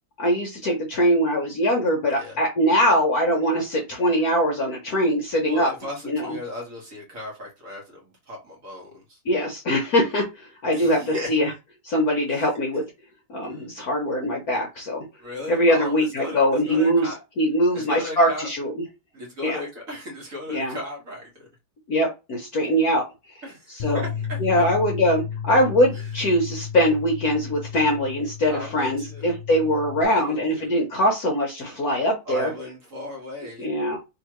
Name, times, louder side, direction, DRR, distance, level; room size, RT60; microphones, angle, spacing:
voice 1, 0.2-5.7 6.0-6.4 9.2-11.5 11.8-12.8 13.3-15.0 15.5-18.7 19.4-19.6 20.5-20.8 21.9-23.3 23.7-24.0 24.4-32.5 33.6-34.0, equal, 60° left, 1.0 m, -22 dB
voice 2, 5.4-9.2 10.7-11.6 12.3-12.5 13.5-13.6 15.2-17.2 17.7-18.5 19.1-21.5 23.4-24.7 25.9-26.1 28.5-29.3 30.0-30.7 32.2-33.7, left 1 dB, 40° right, 1.7 m, -36 dB
Bass guitar, 23.8-30.0, left 8 dB, 85° left, 0.7 m, -33 dB
3.6 x 3.1 x 3.0 m
omnidirectional pair, 2.3 m